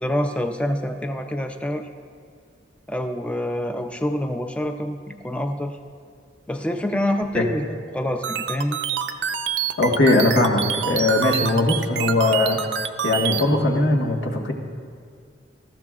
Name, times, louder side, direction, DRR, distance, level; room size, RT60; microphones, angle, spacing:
voice 1, 0.0-1.9 2.9-5.8 6.5-8.8, left 1 dB, 5° left, 6 dB, 0.4 m, -26 dB
sound 1, 8.2-13.4, right 8 dB, 75° right, 0.5 m, -26 dB
voice 2, 9.8-12.6 13.0-14.5, left 2 dB, 80° left, 0 dB, 1.6 m, -20 dB
19.0 x 13.5 x 2.4 m, 2.2 s
head